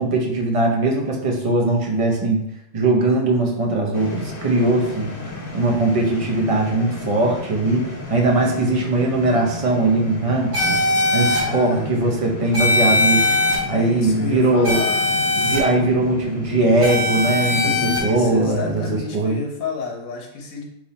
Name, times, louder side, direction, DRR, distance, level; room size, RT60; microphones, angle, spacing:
voice 1, 0.0-2.4 2.7-10.8 11.1-13.3 13.7-14.8 15.4-18.8 19.1-19.4, right 2 dB, 30° right, 0 dB, 0.7 m, -20 dB
sound 1, 3.9-19.0, left 2 dB, 50° left, 0.9 m, -33 dB
sound 2, 10.5-11.4 12.5-13.6 14.6-15.6 16.8-18.0, left 2 dB, 50° right, 1.8 m, -20 dB
voice 2, 11.1-11.9 13.7-15.1 17.6-20.6, left 4 dB, 80° left, 1 dB, 1.3 m, -30 dB
3.7 x 3.3 x 4.1 m, 0.77 s
omnidirectional pair, 1.4 m